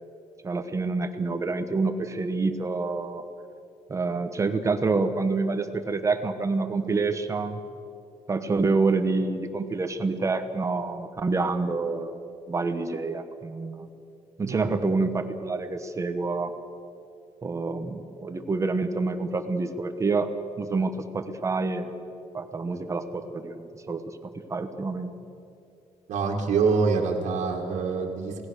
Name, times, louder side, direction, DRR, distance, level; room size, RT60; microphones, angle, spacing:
voice 1, 0.4-3.2 3.9-7.6 8.3-12.2 12.5-13.9 14.4-16.5 17.4-20.3 20.6-21.9 22.3-24.0 24.5-25.1, right 3 dB, 25° right, 8 dB, 1.3 m, -27 dB
voice 2, 14.4-14.8 22.7-22.8 26.1-28.5, right 4 dB, 75° right, 0 dB, 2.1 m, -26 dB
27.5 x 18.5 x 6.6 m, 2.6 s
cardioid pair, 155°, 12 cm